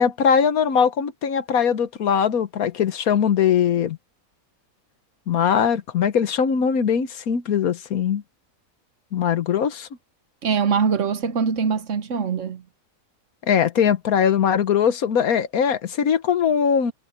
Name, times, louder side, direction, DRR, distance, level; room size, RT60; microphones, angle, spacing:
voice 1, 0.0-4.0 5.3-8.2 9.1-9.9 13.4-16.9, left 7 dB, 90° left, 1.6 m, -21 dB
voice 2, 10.4-12.6, right 6 dB, 60° right, 1.3 m, -23 dB
omnidirectional pair, 1.5 m